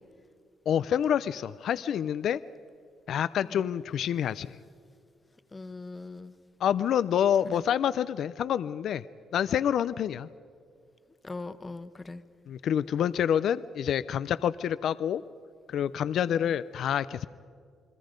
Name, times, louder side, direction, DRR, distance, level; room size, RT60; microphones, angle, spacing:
voice 1, 0.7-2.4 3.1-4.6 6.6-9.0 9.3-10.3 12.5-15.2 15.7-17.3, left 9 dB, 70° left, 15 dB, 0.5 m, -27 dB
voice 2, 5.5-6.3 7.5-7.6 11.2-12.2 16.3-16.5, left 3 dB, 25° left, 11 dB, 1.2 m, -41 dB
29.0 x 21.5 x 5.2 m, 2.3 s
cardioid pair, 90°, 0 cm